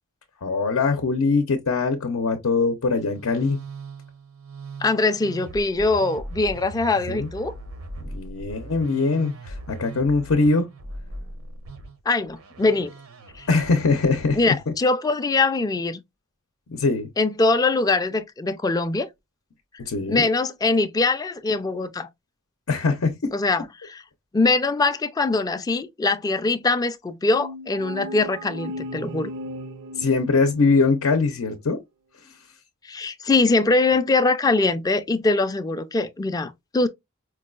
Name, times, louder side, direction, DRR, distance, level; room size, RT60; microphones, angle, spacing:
voice 1, 0.4-3.6 7.1-7.3 8.0-10.7 13.5-14.7 16.7-17.1 19.8-20.3 22.7-23.3 30.0-31.8, left 4 dB, 85° left, 0.6 m, -22 dB
Musical instrument, 2.8-14.6, right 2 dB, 90° right, 0.8 m, -39 dB
voice 2, 4.8-7.5 12.1-12.9 14.4-16.0 17.2-19.1 20.1-22.1 23.3-23.6 23.9-24.0 24.3-29.3 32.9-36.9, left 3 dB, 20° left, 0.3 m, -22 dB
sound 1, 27.3-31.1, equal, 65° right, 0.4 m, -36 dB
4.5 x 2.3 x 2.3 m
head